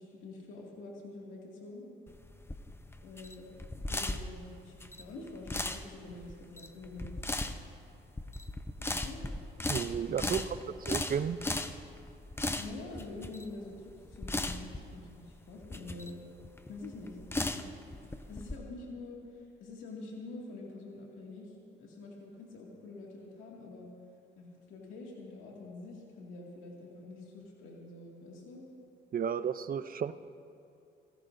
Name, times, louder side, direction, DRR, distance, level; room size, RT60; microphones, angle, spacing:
voice 1, 0.0-1.8 3.0-3.5 3.9-7.1 8.8-9.2 10.1-10.6 12.5-16.2 16.7-17.6 18.1-21.5 21.8-23.9 24.4-28.6, left 3 dB, 90° left, -3 dB, 2.2 m, -46 dB
sound 1, 2.1-18.5, left 2 dB, 10° left, 0.7 m, -37 dB
voice 2, 9.7-10.5 10.9-11.4 29.1-30.1, right 8 dB, 45° right, 13 dB, 0.6 m, -32 dB
26.0 x 15.5 x 2.6 m, 2.5 s
cardioid pair, 90°, 20 cm